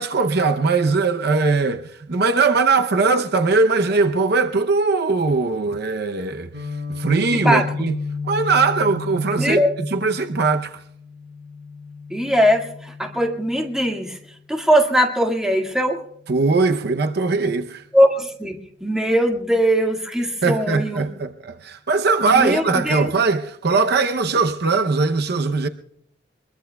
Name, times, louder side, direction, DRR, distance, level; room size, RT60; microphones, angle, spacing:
voice 1, 0.0-6.5 7.0-8.0 8.2-10.8 16.3-17.8 20.4-25.7, right 4 dB, 60° right, 0.7 m, -20 dB
Guitar, 6.5-14.4, left 5 dB, 75° right, 3.6 m, -33 dB
voice 2, 7.3-7.7 9.4-9.7 12.1-14.2 14.5-16.0 17.9-21.1 22.3-23.1, equal, 5° right, 1.9 m, -20 dB
24.0 x 22.0 x 2.3 m
head